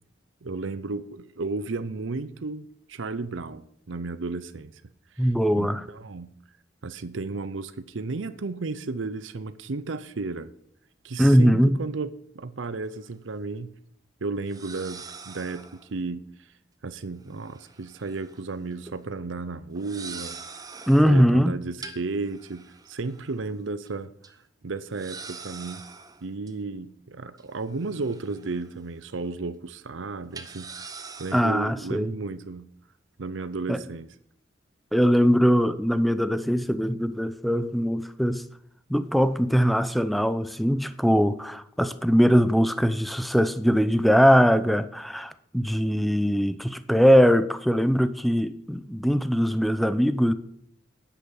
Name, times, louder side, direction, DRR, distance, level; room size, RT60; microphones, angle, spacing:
voice 1, 0.4-4.7 5.2-5.3 5.6-6.3 6.8-10.5 11.0-12.1 12.3-13.7 14.2-16.5 16.8-20.4 21.1-24.4 24.6-25.8 26.2-30.9 31.2-32.7 33.2-34.1, right 3 dB, 80° right, 0.7 m, -33 dB
voice 2, 5.2-5.8 11.2-11.8 20.9-21.5 31.3-32.1 33.7-33.8 34.9-38.4 38.9-50.3, equal, ahead, 0.5 m, -21 dB
sound 1, 12.8-12.9 14.4-15.9 17.3-18.4 18.7-19.0 19.7-21.2 21.8-23.5 23.9-24.0 24.2-24.3 24.9-26.5 27.4-28.8 29.1-29.3 30.3-31.6, right 4 dB, 20° right, 0.9 m, -43 dB
10.0 x 8.4 x 7.1 m
head